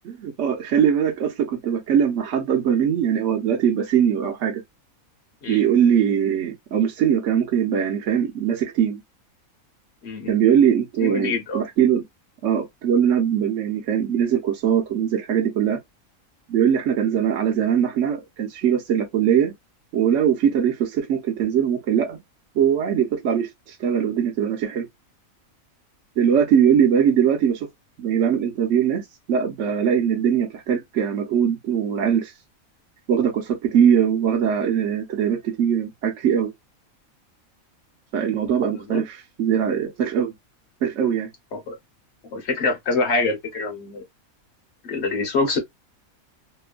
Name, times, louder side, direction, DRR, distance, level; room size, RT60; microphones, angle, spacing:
voice 1, 0.0-4.6 5.5-9.0 10.3-12.0 12.4-15.8 16.5-19.5 19.9-22.2 22.5-24.9 26.2-27.7 28.0-29.0 29.3-32.3 33.1-36.5 38.1-40.3 40.8-41.3, right 8 dB, 65° right, 1.0 m, -21 dB
voice 2, 10.0-10.3 11.0-11.6 38.7-39.0 41.5-41.8 42.3-44.0 44.8-45.6, left 3 dB, 55° left, 1.0 m, -25 dB
3.0 x 2.1 x 2.3 m
omnidirectional pair, 1.5 m